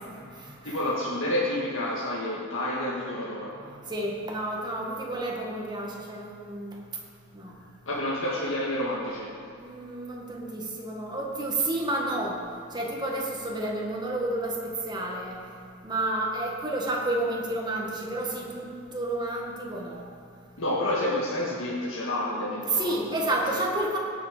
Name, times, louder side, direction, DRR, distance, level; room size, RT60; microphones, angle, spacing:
voice 1, 0.1-0.8 3.6-6.8 7.3-7.5 9.6-12.4 12.7-15.4 15.8-20.1 22.7-24.0, right 1 dB, 20° right, -2 dB, 1.8 m, -30 dB
voice 2, 0.6-3.6 7.9-9.4 20.6-23.6, left 1 dB, 75° left, -6 dB, 1.8 m, -29 dB
17.0 x 7.1 x 5.1 m, 2.6 s
head